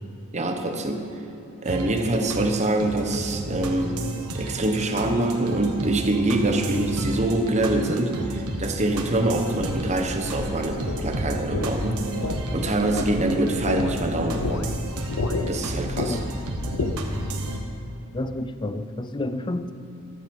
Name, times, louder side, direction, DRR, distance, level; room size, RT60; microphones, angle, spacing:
voice 1, 0.3-1.1 1.6-4.0 4.3-12.0 12.5-14.6 15.5-16.2, right 2 dB, 30° right, 4 dB, 1.1 m, -25 dB
sound 1, 1.6-17.6, right 1 dB, 80° right, 1.3 m, -32 dB
sound 2, 9.6-17.3, left 2 dB, 75° left, 0.8 m, -31 dB
voice 2, 18.1-19.7, left 1 dB, 20° left, 11 dB, 0.5 m, -29 dB
13.5 x 10.5 x 5.4 m, 2.8 s
head